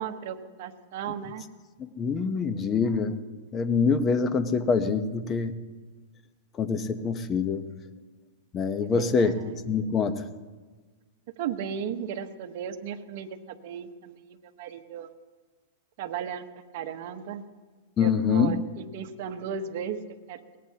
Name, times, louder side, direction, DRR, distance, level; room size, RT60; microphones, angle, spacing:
voice 1, 0.0-1.5 8.8-9.5 11.4-15.1 16.0-16.4 16.7-17.4 18.0-18.6 18.9-20.0 20.3-20.4, right 8 dB, 50° right, 5 dB, 1.2 m, -35 dB
voice 2, 1.8-3.2 3.5-5.6 6.5-7.6 8.5-10.3 18.0-18.6, left 5 dB, 20° left, 10 dB, 0.9 m, -25 dB
22.5 x 18.5 x 2.9 m, 1.4 s
supercardioid pair, 145°, 0 cm